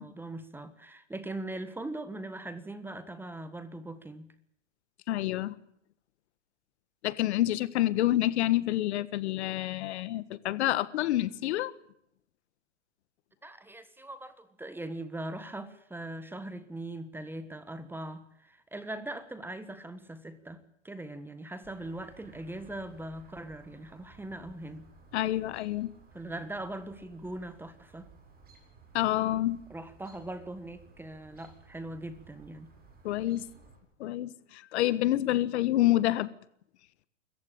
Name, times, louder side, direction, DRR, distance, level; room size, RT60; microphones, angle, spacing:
voice 1, 0.0-4.3 13.4-24.9 26.1-28.1 29.7-32.7, right 1 dB, 5° right, 1.4 m, -41 dB
voice 2, 5.1-5.6 7.0-11.7 25.1-25.9 28.9-29.6 33.0-33.4 34.0-36.3, left 14 dB, 60° left, 1.5 m, -28 dB
Chirp tweet, 21.6-33.8, right 4 dB, 25° right, 8.0 m, -57 dB
25.0 x 15.0 x 9.0 m
hypercardioid pair, 125°, 37 cm